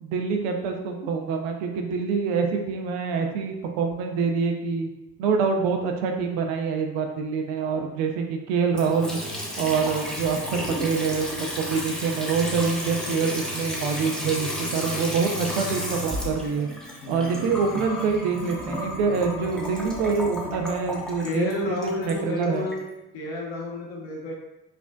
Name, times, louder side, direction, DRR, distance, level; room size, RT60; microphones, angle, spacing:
voice 1, 0.0-4.9 5.2-9.2 9.6-16.7 17.1-22.7, right 5 dB, 80° right, 4 dB, 0.7 m, -26 dB
Water tap faucet / Sink (filling or washing) / Trickle dribble, 8.7-22.8, equal, ahead, 0.6 m, -32 dB
voice 2, 17.0-17.5 21.2-22.8 23.1-24.3, left 2 dB, 60° left, -4 dB, 1.4 m, -31 dB
4.9 x 2.4 x 2.3 m, 0.92 s
supercardioid pair, 80°, 50 cm